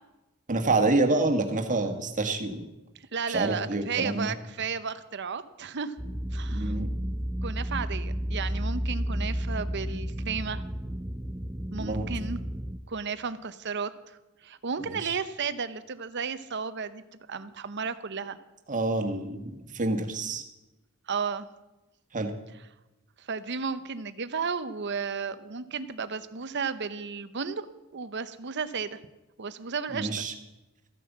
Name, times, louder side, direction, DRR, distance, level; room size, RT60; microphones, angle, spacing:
voice 1, 0.5-2.6 3.3-4.3 6.5-6.9 11.8-12.1 14.9-15.2 18.7-20.4 22.1-22.3 29.9-30.3, right 2 dB, 40° right, 5 dB, 1.7 m, -27 dB
voice 2, 3.1-6.0 6.3-6.8 7.4-10.6 11.7-12.4 12.9-13.9 14.4-17.0 17.3-18.4 21.1-21.5 23.2-27.6 27.9-29.0 29.4-30.2, right 5 dB, 55° right, 13 dB, 0.8 m, -33 dB
sound 1, 6.0-12.8, equal, 10° right, 0.6 m, -32 dB
14.5 x 9.5 x 7.2 m, 1.0 s
head